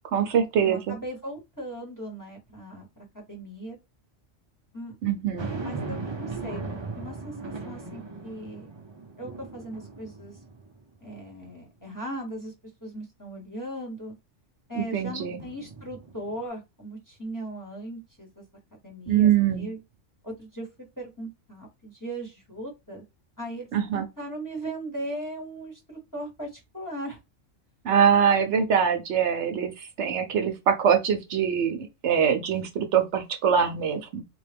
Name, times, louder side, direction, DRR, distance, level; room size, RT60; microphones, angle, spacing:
voice 1, 0.1-0.9 5.0-5.5 14.8-15.4 19.1-19.7 23.7-24.1 27.8-34.2, right 8 dB, 70° right, 0.9 m, -23 dB
voice 2, 0.6-3.8 4.7-5.0 5.6-8.7 9.2-10.4 11.0-12.5 12.8-14.1 14.7-18.4 18.7-19.8 20.2-20.7 21.0-23.0 23.4-27.2, right 1 dB, 15° left, 1.0 m, -38 dB
sound 1, 5.4-10.9 11.4-11.5 15.4-16.5, right 3 dB, 40° right, 0.4 m, -37 dB
3.7 x 2.3 x 3.3 m
omnidirectional pair, 1.3 m